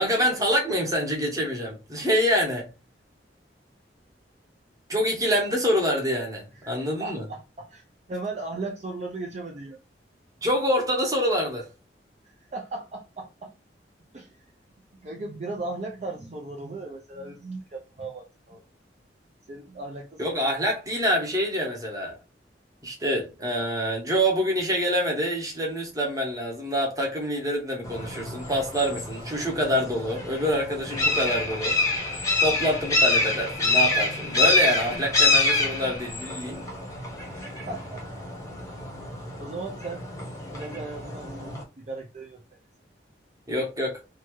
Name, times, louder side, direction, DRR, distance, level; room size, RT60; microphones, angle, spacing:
voice 1, 0.0-2.7 4.9-7.2 10.4-11.7 20.2-22.2 22.8-31.8 32.4-36.7 43.5-44.0, equal, 20° right, 0.9 m, -26 dB
voice 2, 7.0-7.8 8.1-9.8 12.2-13.5 14.1-14.4 15.0-18.6 19.5-20.4 37.2-37.4 37.6-38.0 39.0-39.1 39.4-40.0 40.5-42.4, right 2 dB, 40° right, 0.5 m, -37 dB
sound 1, 27.8-41.6, left 2 dB, 20° left, 0.7 m, -27 dB
2.8 x 2.2 x 3.0 m
head